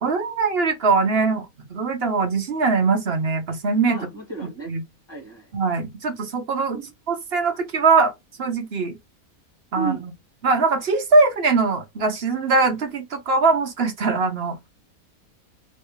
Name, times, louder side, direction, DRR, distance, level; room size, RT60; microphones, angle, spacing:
voice 1, 0.0-4.0 4.7-4.8 5.5-6.8 7.1-8.1 8.4-8.9 9.7-10.0 10.4-14.6, right 4 dB, 50° right, 1.0 m, -21 dB
voice 2, 3.9-4.7 5.1-5.5 6.7-6.9 9.7-10.0, right 5 dB, 15° left, 1.8 m, -32 dB
3.3 x 3.1 x 3.2 m
omnidirectional pair, 1.5 m